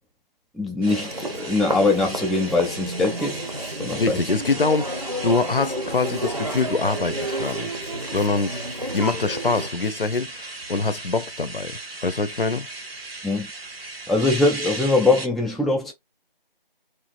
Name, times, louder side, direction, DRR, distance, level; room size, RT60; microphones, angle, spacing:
voice 1, 0.5-3.4 3.8-4.2 13.2-13.5 14.1-15.9, left 3 dB, ahead, 0.3 m, -22 dB
sound 1, 0.8-15.3, right 2 dB, 85° right, 0.8 m, -37 dB
Human voice, 0.9-9.7, right 1 dB, 45° right, 0.6 m, -31 dB
voice 2, 3.9-7.7 8.1-12.7, left 3 dB, 65° left, 0.6 m, -24 dB
3.1 x 2.3 x 2.3 m
figure-of-eight pair, 170°, 29 cm